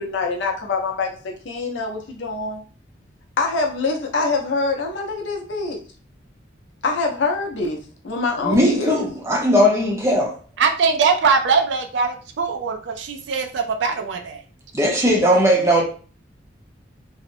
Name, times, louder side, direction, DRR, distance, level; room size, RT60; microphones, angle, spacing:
voice 1, 0.0-2.6 3.4-5.8 6.8-7.8 8.0-9.1, left 3 dB, 75° left, 0.6 m, -24 dB
voice 2, 8.4-10.3 14.7-15.8, equal, 15° right, 0.5 m, -18 dB
voice 3, 10.6-14.4, right 5 dB, 70° right, 0.4 m, -21 dB
2.7 x 2.0 x 2.5 m
head